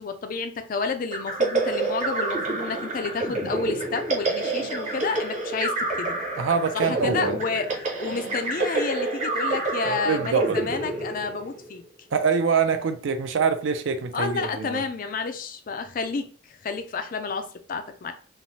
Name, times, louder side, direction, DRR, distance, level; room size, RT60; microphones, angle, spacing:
voice 1, 0.0-6.1 6.7-7.7 8.0-11.8 14.1-18.1, left 4 dB, 40° left, 0.3 m, -30 dB
sound 1, 1.1-11.7, right 2 dB, 35° right, 0.7 m, -28 dB
voice 2, 6.4-7.4 10.0-10.6 12.1-14.8, right 5 dB, 70° right, 0.4 m, -24 dB
3.1 x 2.1 x 2.7 m
head